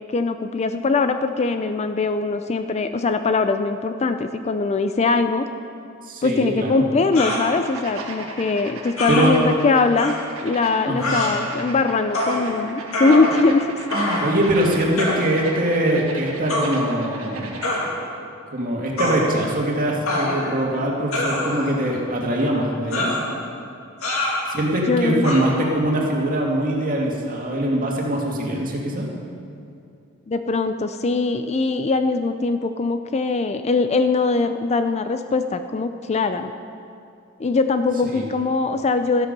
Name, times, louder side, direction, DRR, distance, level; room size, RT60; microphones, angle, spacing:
voice 1, 0.1-5.5 6.2-10.1 10.4-13.8 24.9-25.3 30.3-36.5 37.4-39.3, left 3 dB, 30° left, 9 dB, 0.4 m, -21 dB
voice 2, 6.0-6.8 9.1-9.5 10.9-11.2 14.2-17.5 18.5-23.1 24.5-29.1 38.0-38.2, right 1 dB, 40° right, -2 dB, 2.2 m, -22 dB
sound 1, 7.1-17.9, right 3 dB, 70° right, 1.7 m, -37 dB
sound 2, 7.2-7.4 9.0-9.3 10.0-10.1 11.0-11.3 12.1-12.4 12.9-13.6 13.9-14.4 15.0-15.2 16.5-16.7 17.6-17.9 19.0-19.2 20.1-20.6 21.1-21.7 22.9-23.2 24.0-24.4 25.2-25.4, left 1 dB, 70° left, 2.4 m, -24 dB
13.0 x 12.5 x 5.3 m, 2.5 s
head